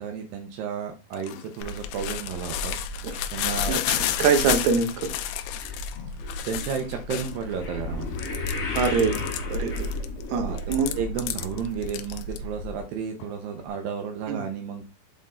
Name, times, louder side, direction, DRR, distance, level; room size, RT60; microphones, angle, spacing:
voice 1, 0.0-2.8 3.3-3.7 6.5-8.2 10.4-14.9, right 7 dB, 90° right, 2.0 m, -32 dB
sound 1, 1.1-7.5 8.0-10.2 10.6-12.4, left 13 dB, 85° left, 2.2 m, -31 dB
Gull seagull, 1.6-12.8, equal, 55° right, 3.4 m, -36 dB
voice 2, 3.7-5.1 8.8-9.9 10.3-11.0 14.3-14.4, right 5 dB, 75° right, 2.8 m, -25 dB
sound 2, 5.5-11.9 12.2-12.6 13.2-13.3 13.6-13.7, left 4 dB, 60° left, 3.4 m, -35 dB
7.9 x 3.7 x 4.1 m
omnidirectional pair, 5.3 m